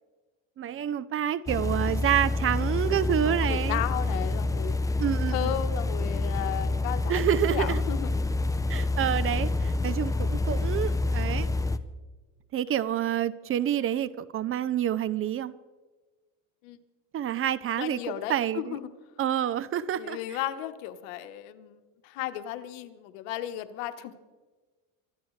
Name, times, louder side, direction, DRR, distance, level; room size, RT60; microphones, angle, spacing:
voice 1, 0.6-3.8 5.0-5.5 7.1-7.8 8.7-11.5 12.5-15.5 17.1-18.8 19.2-20.4, right 10 dB, 35° right, 18 dB, 0.6 m, -28 dB
sound 1, 1.5-11.8, left 2 dB, 10° left, 0.6 m, -28 dB
voice 2, 3.2-4.8 5.3-8.1 16.6-16.8 17.8-18.9 20.0-24.1, left 12 dB, 85° left, 9 dB, 1.2 m, -35 dB
24.5 x 13.5 x 3.2 m, 1.3 s
supercardioid pair, 110°, 37 cm